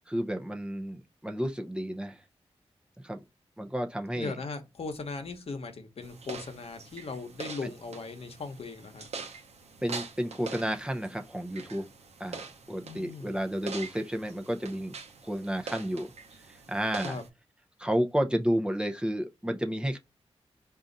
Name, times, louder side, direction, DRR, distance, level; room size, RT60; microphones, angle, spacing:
voice 1, 0.1-2.2 3.0-3.2 3.6-4.4 7.6-7.7 9.8-11.9 12.2-12.4 12.7-15.0 15.2-16.1 16.5-17.2 17.8-20.0, equal, 10° right, 0.6 m, -31 dB
voice 2, 4.1-9.1 12.8-13.3 17.0-17.2, left 4 dB, 65° left, 1.0 m, -38 dB
sound 1, 6.0-17.3, right 4 dB, 80° right, 0.8 m, -44 dB
4.0 x 2.5 x 3.9 m
cardioid pair, 70°, 11 cm